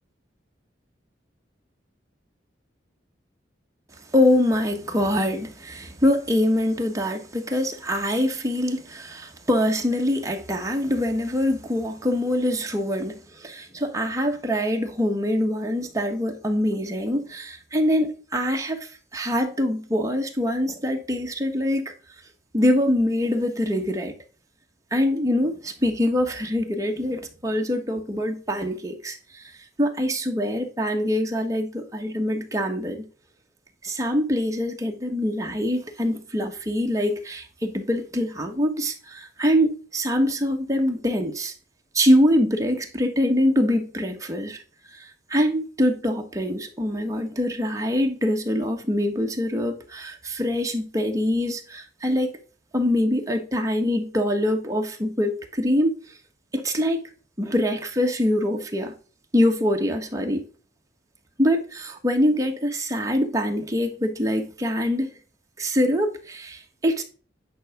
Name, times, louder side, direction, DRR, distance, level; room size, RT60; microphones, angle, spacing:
voice 1, 4.1-21.9 22.5-24.1 24.9-29.5 29.8-33.1 33.8-41.5 41.9-44.6 44.9-52.3 52.7-55.9 56.5-57.0 57.4-58.9 59.3-60.4 61.4-65.1 65.6-67.0, left 1 dB, 20° right, 1.4 m, -24 dB
10.0 x 5.6 x 3.7 m
head